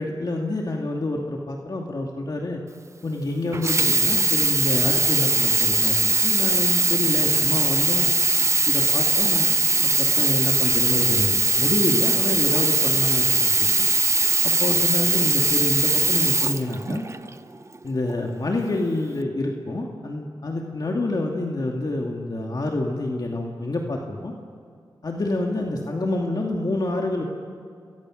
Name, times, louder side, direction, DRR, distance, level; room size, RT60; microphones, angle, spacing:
voice 1, 0.0-2.6 3.0-8.1 8.7-9.5 9.8-13.9 14.4-17.1 17.8-24.3 25.0-27.2, left 2 dB, 55° left, 0 dB, 2.5 m, -27 dB
Sink (filling or washing), 3.5-17.3 18.0-18.1, right 3 dB, 35° right, 0.9 m, -20 dB
29.0 x 23.0 x 6.5 m, 2.3 s
wide cardioid pair, 85°, 8 cm